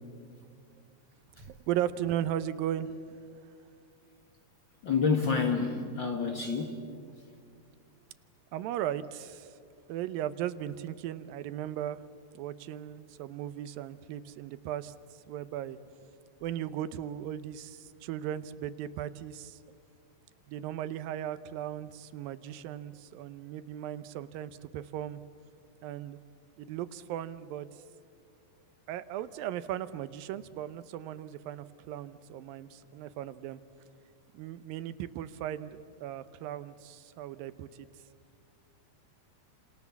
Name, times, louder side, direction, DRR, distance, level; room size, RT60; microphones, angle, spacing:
voice 1, 1.5-3.0 8.5-9.5 9.9-12.0 12.3-14.9 15.3-15.8 16.4-19.6 20.5-25.2 25.8-26.2 26.6-27.7 28.9-33.6 34.3-37.9, right 11 dB, 85° right, 13 dB, 2.6 m, -37 dB
voice 2, 4.8-6.8, left 5 dB, 45° left, 3 dB, 1.7 m, -28 dB
30.0 x 27.5 x 7.1 m, 2.3 s
omnidirectional pair, 4.0 m